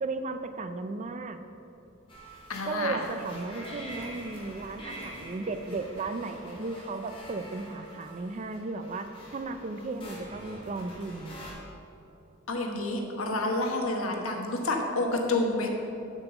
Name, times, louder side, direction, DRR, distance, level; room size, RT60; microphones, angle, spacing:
voice 1, 0.0-1.4 2.6-11.4, right 3 dB, 35° right, 9 dB, 0.4 m, -35 dB
sound 1, 2.1-11.5, equal, 25° left, 1.9 m, -45 dB
voice 2, 2.5-3.0 12.5-15.7, left 2 dB, 85° left, 2 dB, 1.1 m, -29 dB
6.9 x 5.6 x 7.0 m, 2.8 s
head